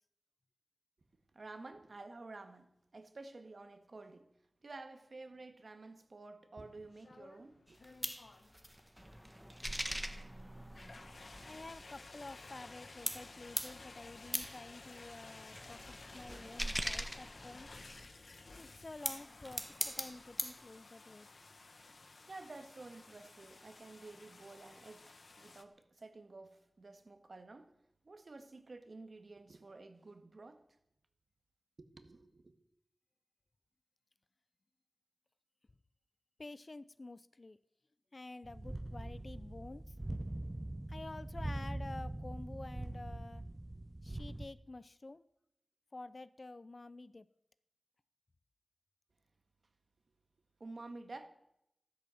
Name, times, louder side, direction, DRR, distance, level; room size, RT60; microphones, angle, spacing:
voice 1, 1.3-4.3 4.6-7.8 22.3-27.7 28.0-30.6 31.8-32.5 50.6-51.3, right 3 dB, 65° right, 1.8 m, -51 dB
sound 1, 6.7-25.6, left 3 dB, 70° left, 1.4 m, -55 dB
sound 2, 7.7-12.8 13.1-18.1 18.8-20.6, equal, 5° right, 1.4 m, -42 dB
voice 2, 11.4-15.8 16.1-17.7 18.6-21.3 36.4-37.6 38.1-39.9 40.9-43.4 44.0-45.2 45.9-47.3, left 2 dB, 45° left, 0.6 m, -50 dB
sound 3, 38.4-44.5, right 1 dB, 25° right, 0.9 m, -42 dB
14.0 x 13.0 x 7.8 m
wide cardioid pair, 80°, 0 cm